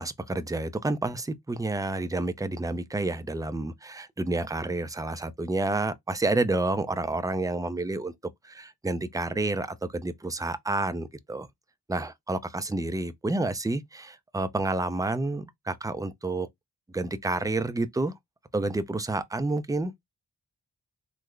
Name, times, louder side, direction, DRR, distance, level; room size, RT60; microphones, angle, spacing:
voice 1, 0.0-8.1 8.4-11.5 11.9-16.5 16.9-18.1 18.5-19.9, right 2 dB, 10° right, 0.4 m, -29 dB
3.6 x 2.0 x 3.2 m
cardioid pair, 45°, 42 cm